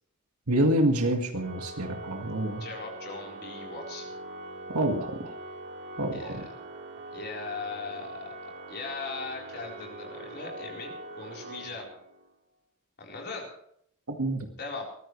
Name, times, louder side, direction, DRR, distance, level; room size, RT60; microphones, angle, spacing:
voice 1, 0.5-2.6 4.7-5.4 6.0-6.4 14.1-14.5, right 1 dB, 80° right, 3 dB, 2.0 m, -27 dB
Organ, 1.3-12.3, right 2 dB, 55° right, 2.7 m, -42 dB
voice 2, 2.6-4.1 6.1-6.5 7.1-11.9 13.0-13.6 14.6-14.9, left 3 dB, 50° left, -1 dB, 4.3 m, -39 dB
23.0 x 15.0 x 3.3 m, 0.69 s
head